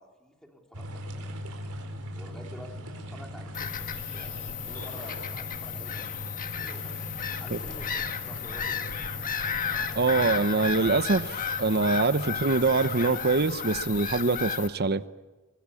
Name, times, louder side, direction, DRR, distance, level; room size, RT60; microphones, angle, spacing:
voice 1, 0.0-1.5 2.2-6.1 6.3-7.0 7.4-7.9 8.2-8.8, equal, 5° left, 3.6 m, -49 dB
sound 1, 0.7-13.6, equal, 90° right, 4.5 m, -41 dB
Bird vocalization bird call bird song / Gull seagull, 3.5-14.7, left 7 dB, 40° left, 1.5 m, -33 dB
voice 2, 9.9-15.0, right 3 dB, 45° right, 0.9 m, -24 dB
22.5 x 22.0 x 8.5 m
head